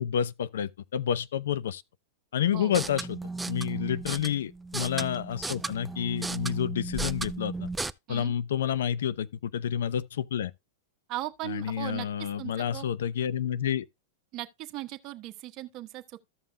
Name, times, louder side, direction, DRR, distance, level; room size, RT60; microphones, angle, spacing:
voice 1, 0.0-1.8 2.3-3.2 3.5-7.7 8.1-10.5 11.4-13.9, left 9 dB, 85° left, 0.6 m, -29 dB
sound 1, 2.6-7.9, right 3 dB, 5° right, 0.3 m, -35 dB
voice 2, 11.1-12.8 14.3-16.2, right 15 dB, 40° right, 1.1 m, -38 dB
14.5 x 5.6 x 2.2 m
supercardioid pair, 140°, 0 cm